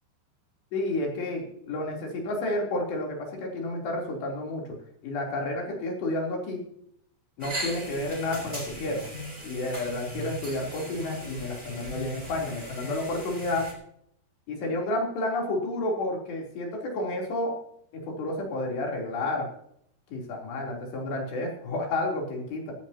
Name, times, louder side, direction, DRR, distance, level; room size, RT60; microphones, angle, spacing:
voice 1, 0.7-4.6 5.0-6.6 7.4-9.0 9.4-13.7 14.5-17.5 18.1-19.5 20.1-22.7, left 2 dB, 80° left, 0 dB, 5.7 m, -30 dB
sound 1, 7.4-13.7, equal, 10° right, 3.9 m, -38 dB
16.5 x 15.0 x 2.9 m, 0.69 s
omnidirectional pair, 4.8 m